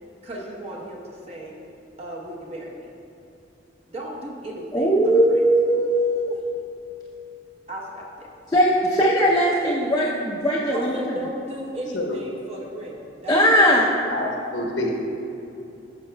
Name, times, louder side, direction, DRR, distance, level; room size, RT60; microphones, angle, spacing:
voice 1, 0.2-1.6 2.0-2.9 3.9-5.4 7.7-8.3 10.7-13.9, right 1 dB, 35° right, -3 dB, 0.9 m, -36 dB
voice 2, 4.7-6.3 8.5-11.0 13.3-13.9, equal, 20° left, -6 dB, 0.6 m, -19 dB
voice 3, 14.5-14.9, left 1 dB, 70° left, 0 dB, 1.0 m, -26 dB
11.0 x 6.1 x 2.2 m, 2.7 s
head